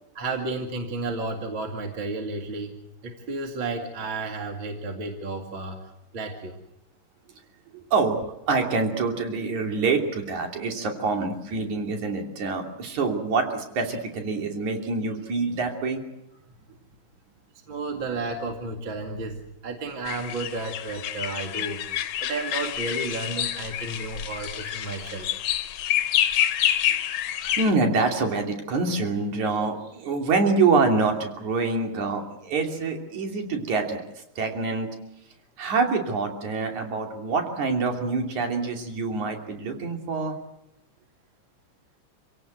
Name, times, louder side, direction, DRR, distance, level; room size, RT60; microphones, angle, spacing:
voice 1, 0.1-2.7 3.0-5.8 6.1-6.6 17.7-25.3, right 3 dB, 40° right, 2 dB, 2.8 m, -32 dB
voice 2, 7.7-16.0 27.6-34.0 34.4-34.9 35.6-40.4, right 4 dB, 70° right, 3 dB, 4.3 m, -26 dB
sound 1, 20.0-27.7, left 11 dB, 65° left, 2.0 m, -28 dB
28.0 x 17.0 x 7.9 m, 0.84 s
omnidirectional pair, 3.5 m